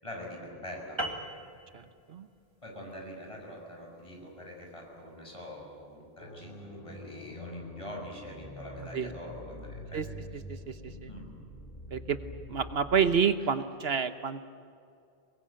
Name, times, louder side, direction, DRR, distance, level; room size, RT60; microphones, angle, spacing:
voice 1, 0.0-1.0 2.6-10.0 10.3-10.4 11.1-11.3 13.4-13.5, left 1 dB, 30° left, 0 dB, 6.3 m, -44 dB
sound 1, 1.0-5.7, right 1 dB, 25° right, 2.1 m, -41 dB
sound 2, 6.2-13.2, left 1 dB, 55° left, 3.6 m, -45 dB
voice 2, 12.5-14.5, right 6 dB, 75° right, 10 dB, 1.2 m, -28 dB
23.5 x 22.0 x 8.7 m, 2.4 s
omnidirectional pair, 1.1 m